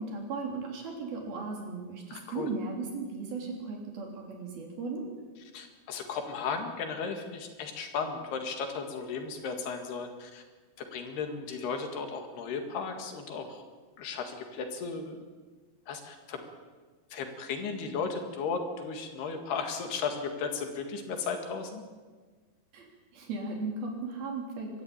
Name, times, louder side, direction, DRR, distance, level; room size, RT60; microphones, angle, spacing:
voice 1, 0.0-5.0 22.7-22.9 23.1-24.8, right 3 dB, 65° right, 1 dB, 5.1 m, -36 dB
voice 2, 2.1-2.5 5.4-10.4 10.8-13.6 14.0-15.2 15.9-16.4 17.1-21.8, left 5 dB, 75° left, 5 dB, 3.9 m, -35 dB
23.5 x 13.5 x 8.8 m, 1.4 s
omnidirectional pair, 4.8 m